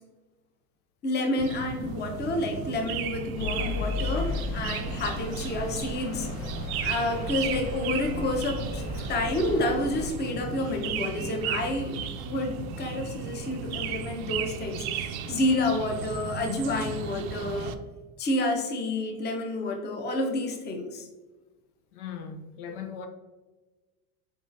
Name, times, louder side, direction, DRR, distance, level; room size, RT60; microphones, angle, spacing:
voice 1, 1.0-6.3 6.8-8.8 9.1-12.0 12.2-17.7 18.2-21.1, left 2 dB, 25° left, 3 dB, 0.7 m, -29 dB
sound 1, 1.4-17.8, right 7 dB, 70° right, 0.5 m, -35 dB
sound 2, 3.4-10.1, left 3 dB, 50° left, 0.9 m, -35 dB
sound 3, 4.5-12.3, right 1 dB, ahead, 0.3 m, -46 dB
voice 2, 21.9-23.1, left 7 dB, 75° left, 6 dB, 0.7 m, -38 dB
4.2 x 3.6 x 2.6 m, 1.2 s
hypercardioid pair, 105°, 45 cm